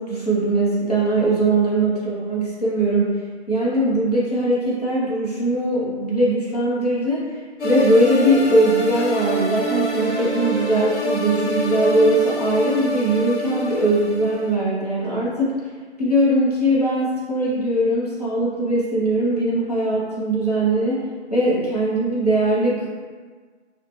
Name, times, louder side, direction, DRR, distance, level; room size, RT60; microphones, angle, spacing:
voice 1, 0.0-3.2 3.5-15.5 16.0-21.0 21.3-22.9, right 1 dB, 35° left, -8 dB, 0.6 m, -20 dB
sound 1, 7.6-14.5, right 1 dB, 85° left, 0.7 m, -26 dB
2.7 x 2.1 x 3.0 m, 1.5 s
figure-of-eight pair, 155°, 34 cm